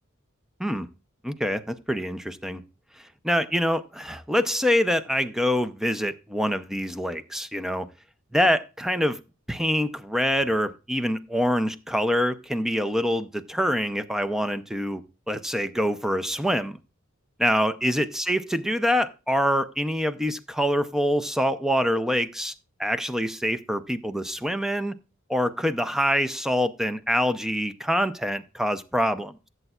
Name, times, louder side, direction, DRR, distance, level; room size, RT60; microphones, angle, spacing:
voice 1, 1.2-2.6 3.0-7.9 8.3-9.2 9.5-15.0 15.3-16.8 17.4-22.5 22.8-25.0 25.3-29.5, equal, ahead, 0.5 m, -25 dB
15.0 x 7.9 x 2.4 m
head